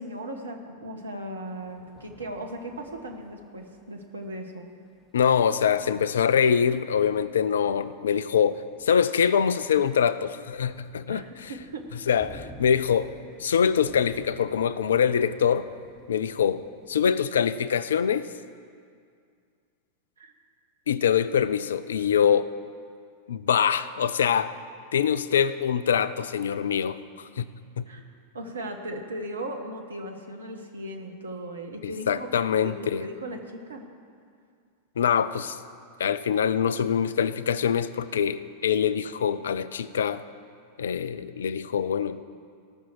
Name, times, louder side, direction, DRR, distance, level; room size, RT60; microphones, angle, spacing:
voice 1, 0.0-4.7 11.1-11.8 20.2-20.3 27.9-28.0 28.3-32.3 32.5-33.9, right 1 dB, 75° right, 4 dB, 1.3 m, -37 dB
sound 1, 1.5-17.0, equal, 15° left, 1.6 m, -53 dB
voice 2, 5.1-11.5 12.1-13.1 13.4-15.7 16.1-16.6 16.9-18.2 20.9-22.5 23.3-24.5 24.9-27.5 27.8-27.9 31.8-33.1 35.0-35.6 36.0-40.2 40.8-42.2, left 7 dB, 65° left, 15 dB, 0.4 m, -24 dB
16.5 x 6.2 x 7.4 m, 2.2 s
figure-of-eight pair, 90°, 0 cm